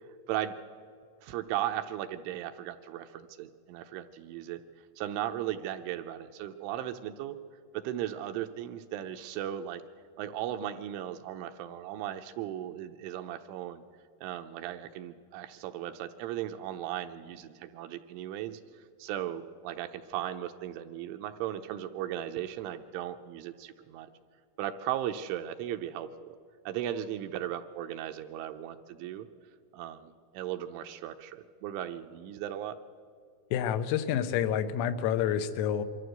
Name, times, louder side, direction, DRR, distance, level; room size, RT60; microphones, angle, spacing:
voice 1, 1.2-4.6 5.0-7.4 7.7-9.8 10.2-13.8 14.2-24.1 24.6-26.4 26.7-29.3 29.7-32.8, right 11 dB, 80° right, 7 dB, 2.9 m, -37 dB
voice 2, 33.5-35.8, left 9 dB, 90° left, 11 dB, 3.6 m, -28 dB
23.5 x 14.0 x 7.9 m, 2.2 s
omnidirectional pair, 5.9 m